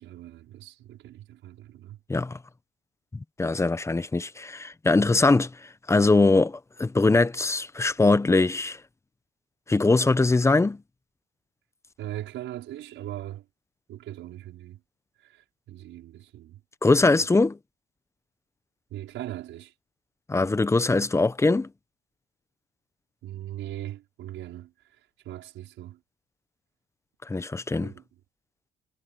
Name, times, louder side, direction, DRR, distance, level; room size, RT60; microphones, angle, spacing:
voice 1, 0.0-2.0 12.0-13.4 13.9-14.8 15.2-16.6 17.2-17.3 18.9-19.7 23.2-24.7 25.2-26.0 27.8-28.0, right 13 dB, 80° right, 5.0 m, -39 dB
voice 2, 3.1-8.8 9.7-10.8 16.8-17.6 20.3-21.7 27.3-27.9, left 3 dB, 15° left, 0.9 m, -22 dB
cardioid pair, 115°, 20 cm